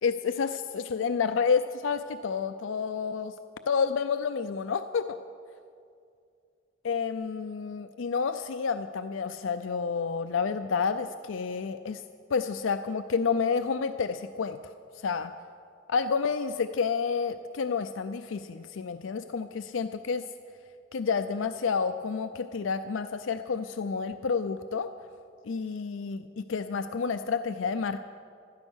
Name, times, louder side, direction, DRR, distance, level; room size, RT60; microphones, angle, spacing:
voice 1, 0.0-3.3 3.7-5.2 6.8-12.0 12.3-14.6 14.9-15.3 15.9-20.2 20.9-24.9 25.4-28.0, left 5 dB, 85° left, 10 dB, 0.5 m, -29 dB
15.5 x 12.5 x 6.2 m, 2.3 s
head